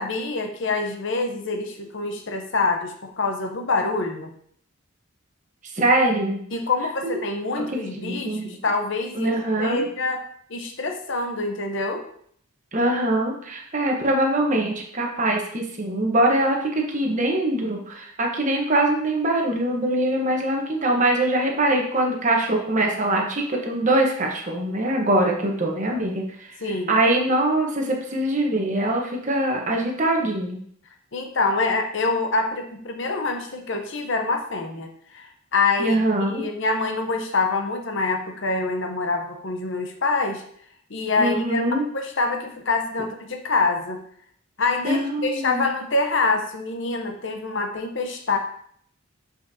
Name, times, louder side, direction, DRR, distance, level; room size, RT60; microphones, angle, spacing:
voice 1, 0.0-4.3 6.5-10.2 10.5-12.0 26.6-27.0 31.1-34.9 35.1-40.4 40.9-44.0 44.6-48.4, left 3 dB, 55° left, 4 dB, 0.8 m, -26 dB
voice 2, 5.7-6.4 7.0-7.2 7.6-8.6 9.1-9.8 12.7-26.5 26.9-30.6 35.8-36.5 41.2-41.8 44.8-45.7, right 1 dB, 35° right, 1 dB, 1.0 m, -23 dB
7.7 x 5.1 x 2.7 m, 0.64 s
head